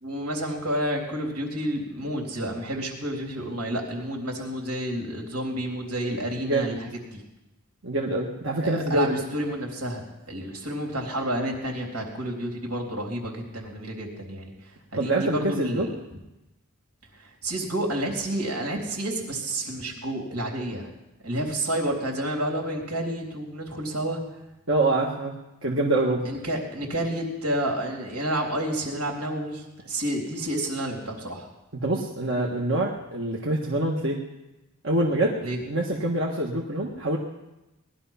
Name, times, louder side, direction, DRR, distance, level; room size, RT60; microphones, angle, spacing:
voice 1, 0.0-6.8 7.1-7.2 8.6-10.0 10.3-14.5 14.9-15.9 17.2-20.9 21.2-24.2 26.2-31.5 35.4-35.6, right 1 dB, 90° right, 0 dB, 3.6 m, -30 dB
voice 2, 6.4-6.7 7.8-9.2 15.0-15.9 24.7-25.3 25.6-26.2 31.8-34.2 34.8-35.4 35.7-37.2, right 2 dB, 60° right, -2 dB, 1.6 m, -25 dB
19.5 x 11.5 x 5.7 m, 0.98 s
head